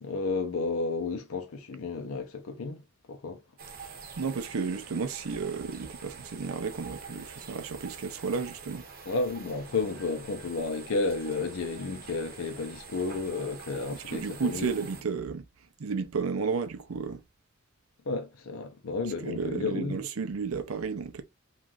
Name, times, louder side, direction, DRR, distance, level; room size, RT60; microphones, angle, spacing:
voice 1, 0.0-2.8 3.1-3.4 9.1-14.7 18.1-20.0, left 3 dB, 85° left, 0.6 m, -32 dB
sound 1, 3.6-15.0, right 5 dB, 45° right, 0.8 m, -46 dB
voice 2, 4.2-8.9 14.1-15.4 15.8-17.2 19.2-21.2, right 5 dB, 85° right, 0.5 m, -32 dB
3.0 x 2.4 x 2.4 m
head